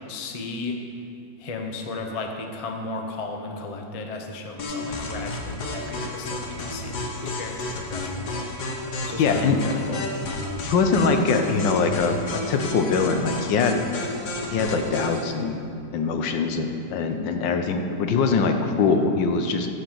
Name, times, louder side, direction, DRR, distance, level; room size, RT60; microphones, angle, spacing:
voice 1, 0.1-0.8 1.4-8.5 9.0-10.1, left 3 dB, 45° left, 3 dB, 0.4 m, -34 dB
sound 1, 4.6-15.2, left 2 dB, 65° left, 1.7 m, -31 dB
voice 2, 9.2-9.6 10.6-12.2 12.5-13.8 14.5-19.7, left 4 dB, 80° left, 5 dB, 1.5 m, -23 dB
14.5 x 5.1 x 5.9 m, 2.5 s
omnidirectional pair, 2.0 m